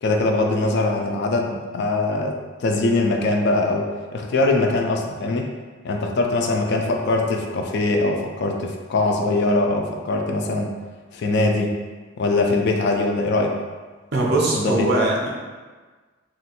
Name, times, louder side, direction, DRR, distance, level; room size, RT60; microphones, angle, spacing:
voice 1, 0.0-5.5 5.8-10.7 11.1-11.8 12.2-13.5 14.5-14.9, left 2 dB, 55° left, 2 dB, 0.3 m, -22 dB
voice 2, 14.1-15.3, right 2 dB, 50° right, -3 dB, 0.6 m, -21 dB
2.9 x 2.5 x 2.8 m, 1.4 s
head